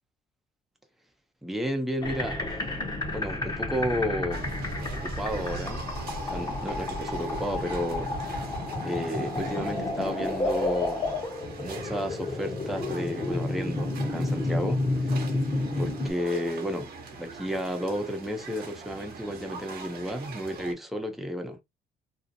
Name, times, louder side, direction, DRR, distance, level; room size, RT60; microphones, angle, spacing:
voice 1, 1.4-2.4 3.1-4.5 4.9-5.9 6.2-8.1 8.8-11.1 11.6-15.3 15.8-16.9 17.2-21.6, equal, ahead, 0.6 m, -32 dB
sound 1, 2.0-16.1, left 2 dB, 25° left, 0.9 m, -31 dB
sound 2, 2.7-10.8, left 6 dB, 75° left, 0.8 m, -48 dB
sound 3, 4.3-20.7, right 4 dB, 65° right, 0.9 m, -43 dB
2.8 x 2.0 x 2.5 m
cardioid pair, 110°, 17 cm